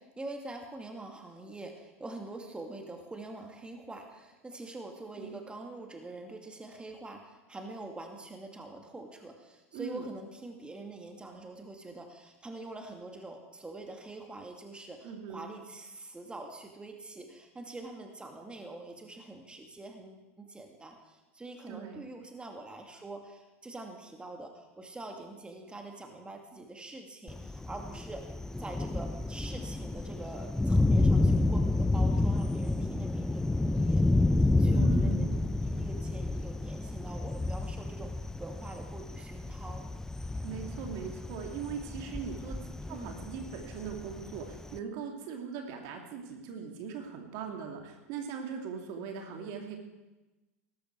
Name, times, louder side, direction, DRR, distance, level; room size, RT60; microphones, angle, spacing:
voice 1, 0.0-34.0 34.4-35.3 35.6-38.1 38.4-39.8 42.8-43.2, right 2 dB, 10° right, 3 dB, 2.4 m, -45 dB
voice 2, 9.7-10.1 15.0-15.5 21.7-22.1 34.7-35.5 40.4-42.6 42.9-49.8, right 6 dB, 55° right, 3 dB, 2.6 m, -40 dB
Thunder, 27.3-44.8, left 2 dB, 5° left, 0.6 m, -29 dB
18.0 x 13.5 x 4.7 m, 1.1 s
hypercardioid pair, 90°, 8 cm